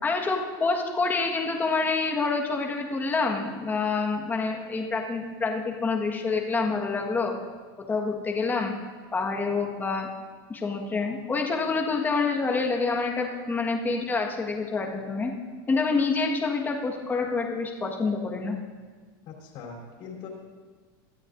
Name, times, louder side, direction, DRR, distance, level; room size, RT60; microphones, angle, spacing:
voice 1, 0.0-7.4 7.9-8.7 9.1-10.1 10.5-15.3 15.7-18.6, left 4 dB, 15° left, 1 dB, 1.5 m, -27 dB
voice 2, 19.3-20.3, left 5 dB, 50° left, -1 dB, 3.8 m, -41 dB
22.0 x 13.5 x 2.6 m, 1.5 s
supercardioid pair, 145°, 12 cm